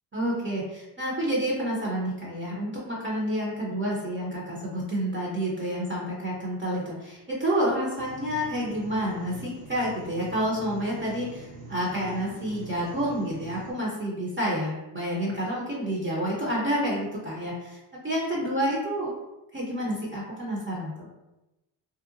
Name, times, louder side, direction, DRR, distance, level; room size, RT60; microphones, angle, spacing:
voice 1, 0.1-17.8 18.0-19.1 19.5-21.1, equal, 25° right, -5 dB, 0.7 m, -29 dB
sound 1, 8.0-13.7, right 3 dB, 60° right, 0.9 m, -44 dB
2.7 x 2.1 x 2.5 m, 0.97 s
cardioid pair, 90°, 48 cm